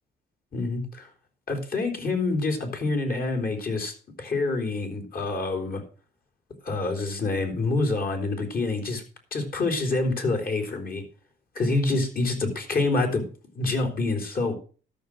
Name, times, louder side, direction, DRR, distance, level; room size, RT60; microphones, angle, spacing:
voice 1, 0.5-1.1 1.5-5.8 6.6-9.0 9.3-11.0 11.6-13.3 13.6-14.6, left 3 dB, 45° left, 3 dB, 3.7 m, -27 dB
13.0 x 6.4 x 6.2 m, 0.38 s
cardioid pair, 90°, 20 cm